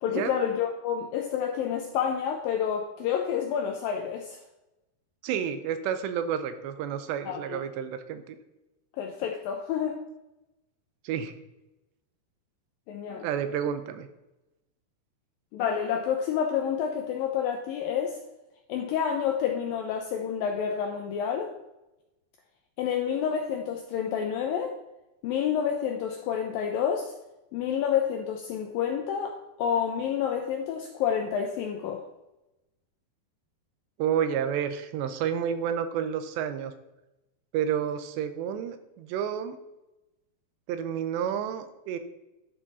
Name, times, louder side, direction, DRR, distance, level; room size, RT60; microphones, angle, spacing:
voice 1, 0.0-4.4 7.3-7.6 9.0-10.0 12.9-13.3 15.5-18.2 18.7-21.5 22.8-24.8 25.2-27.1 27.5-32.0, left 8 dB, 80° left, 3 dB, 2.0 m, -29 dB
voice 2, 5.2-8.4 11.0-11.3 13.1-14.1 34.0-36.7 37.5-39.6 40.7-42.0, right 8 dB, 85° right, 10 dB, 3.0 m, -30 dB
11.0 x 6.1 x 4.1 m, 0.96 s
omnidirectional pair, 4.9 m